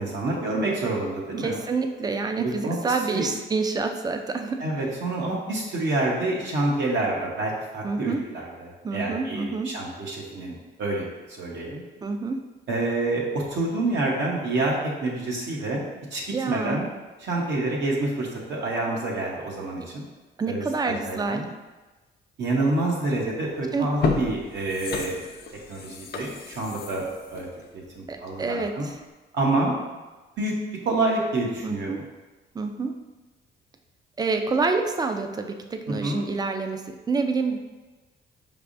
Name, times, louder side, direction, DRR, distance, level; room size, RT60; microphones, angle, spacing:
voice 1, 0.0-1.6 2.4-3.3 4.6-11.8 12.7-15.8 16.1-16.2 16.5-16.9 17.2-20.1 20.5-21.5 22.4-25.2 25.7-27.5 27.7-28.9 29.3-29.8 30.4-30.6 30.8-32.0 35.9-36.2, right 2 dB, 65° right, -3 dB, 0.9 m, -27 dB
voice 2, 1.4-4.7 7.8-8.2 8.8-9.8 12.0-12.5 16.3-16.8 20.4-21.5 23.7-23.9 28.1-29.0 31.6-32.0 32.5-33.0 34.2-37.6, right 4 dB, 20° right, 6 dB, 0.4 m, -27 dB
sound 1, 23.2-23.4 23.8-28.5 28.9-29.0, left 4 dB, 50° left, 0.5 m, -32 dB
4.9 x 3.4 x 2.6 m, 1.2 s
cardioid pair, 90°, 20 cm